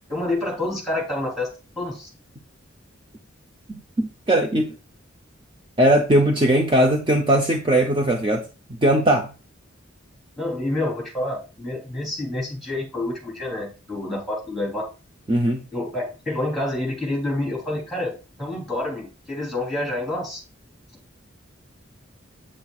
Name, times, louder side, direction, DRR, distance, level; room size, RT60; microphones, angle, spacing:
voice 1, 0.1-1.5 1.8-2.1 10.4-14.9 15.7-20.4, left 1 dB, ahead, -2 dB, 3.7 m, -28 dB
voice 2, 3.7-4.7 5.8-8.4 8.8-9.3 15.3-15.6, right 1 dB, 25° right, 3 dB, 0.7 m, -19 dB
8.6 x 7.7 x 2.4 m, 0.32 s
head